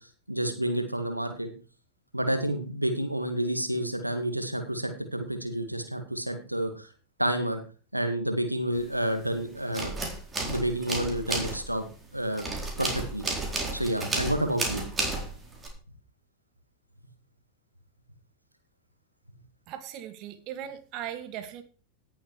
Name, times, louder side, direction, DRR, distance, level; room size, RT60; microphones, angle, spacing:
voice 1, 0.3-1.5 2.1-6.9 7.2-7.6 7.9-9.9 10.4-11.8 12.1-12.5 12.8-13.2 13.7-14.8, right 1 dB, 90° right, 7 dB, 1.9 m, -29 dB
sound 1, 8.8-9.4 9.6-15.7, right 2 dB, 15° right, 4.1 m, -32 dB
voice 2, 19.7-21.6, right 10 dB, 40° right, 10 dB, 1.5 m, -38 dB
17.5 x 7.2 x 4.8 m, 0.37 s
figure-of-eight pair, 90°, 0 cm